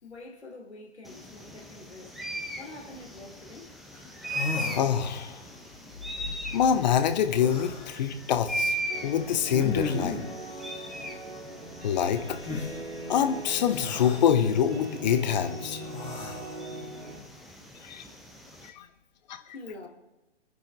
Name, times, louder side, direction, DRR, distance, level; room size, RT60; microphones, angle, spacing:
voice 1, 0.0-2.1 2.6-3.7 4.0-4.4 17.1-17.6 19.5-19.9, left 2 dB, 70° left, 4.0 m, -46 dB
sound 1, 1.0-18.7, right 1 dB, ahead, 0.9 m, -39 dB
sound 2, 3.9-4.0 4.2-5.5 7.3-7.9 9.5-10.3 12.4-12.7 13.6-14.3 15.8-16.6, left 4 dB, 15° left, 2.6 m, -35 dB
voice 2, 4.7-5.4 6.5-8.8 9.0-10.2 11.8-12.4 13.1-15.8 17.8-18.0 18.7-18.9 19.3-19.4, left 8 dB, 40° left, 1.5 m, -25 dB
sound 3, 8.9-17.2, right 2 dB, 75° right, 4.2 m, -41 dB
26.0 x 9.9 x 3.9 m
figure-of-eight pair, 120°, 33 cm